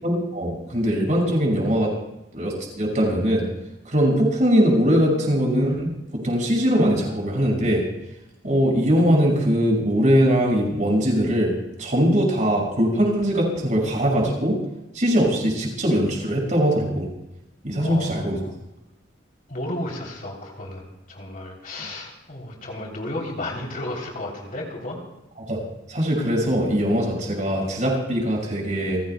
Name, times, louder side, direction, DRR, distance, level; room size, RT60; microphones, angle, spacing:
voice 1, 0.0-1.9 2.3-3.5 3.8-7.8 8.4-11.5 11.8-14.6 14.9-17.1 17.6-18.4 25.5-25.6 25.9-29.0, equal, 40° right, 0 dB, 5.9 m, -21 dB
voice 2, 17.7-18.5 19.5-25.0, left 1 dB, 50° left, -1 dB, 3.3 m, -33 dB
29.5 x 16.0 x 2.3 m, 0.93 s
head